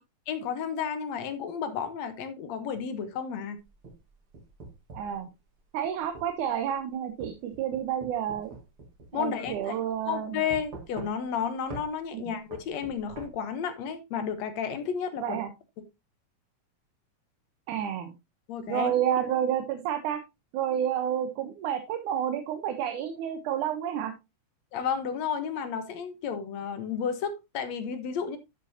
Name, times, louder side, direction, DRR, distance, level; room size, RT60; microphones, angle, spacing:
voice 1, 0.3-3.6 9.1-9.7 10.1-15.4 18.5-18.9 24.7-28.4, left 7 dB, 65° left, 10 dB, 2.1 m, -32 dB
sound 1, 3.6-5.2 6.2-6.3 7.2-9.2 9.5-9.6 10.5-11.4 11.7-11.9 12.5-13.3, right 3 dB, 45° right, 2.5 m, -43 dB
voice 2, 4.9-5.3 5.7-8.5 9.1-10.4 12.1-12.3 15.2-15.5 17.7-18.1 18.7-20.2 20.5-24.1, right 9 dB, 80° right, 7 dB, 2.4 m, -30 dB
11.0 x 6.8 x 2.7 m, 0.23 s
omnidirectional pair, 3.6 m